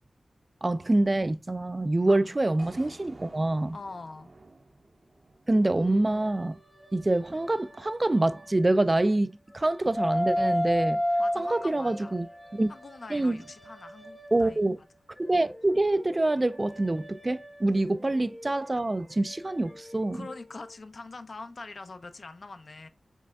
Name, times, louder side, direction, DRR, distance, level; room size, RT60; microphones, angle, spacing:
voice 1, 0.6-3.8 5.5-6.6 6.9-11.0 11.4-12.3 12.5-12.7 13.1-13.4 14.3-14.8 15.2-20.3, right 2 dB, 30° right, 0.3 m, -26 dB
sound 1, 2.6-6.7, right 2 dB, 50° right, 0.7 m, -51 dB
voice 2, 3.7-4.3 11.2-12.1 12.7-14.6 20.1-22.9, left 3 dB, 55° left, 0.5 m, -43 dB
sound 2, 5.5-9.1 9.5-14.7 15.2-20.7, left 1 dB, 5° left, 0.7 m, -35 dB
5.2 x 3.3 x 2.3 m
wide cardioid pair, 85°, 0 cm